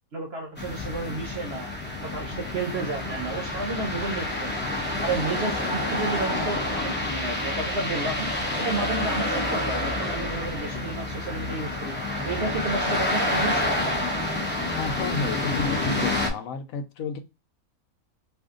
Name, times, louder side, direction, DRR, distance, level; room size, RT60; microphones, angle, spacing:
voice 1, 0.1-1.7 2.0-4.5 5.0-8.3 8.6-12.0 12.2-13.7, right 3 dB, 50° right, 0.9 m, -31 dB
sound 1, 0.6-16.3, left 1 dB, 15° left, 0.4 m, -28 dB
voice 2, 14.7-17.2, left 4 dB, 70° left, 1.0 m, -31 dB
2.7 x 2.5 x 3.6 m
omnidirectional pair, 1.5 m